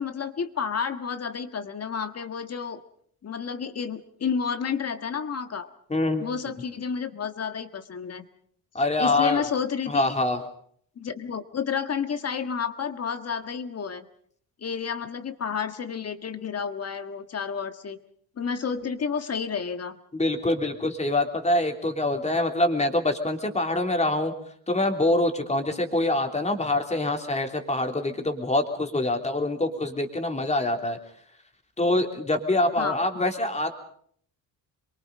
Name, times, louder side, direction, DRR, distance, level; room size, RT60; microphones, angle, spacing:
voice 1, 0.0-2.8 3.2-5.7 6.2-8.2 9.0-10.2 11.0-14.1 14.6-18.0 18.4-20.0 32.8-33.0, left 6 dB, 45° left, 9 dB, 1.7 m, -30 dB
voice 2, 5.9-6.2 8.7-9.4 9.9-10.4 20.1-24.3 24.7-31.0 31.8-33.7, left 2 dB, 20° left, 4 dB, 3.2 m, -25 dB
27.0 x 23.0 x 5.3 m, 0.62 s
cardioid pair, 120°, 36 cm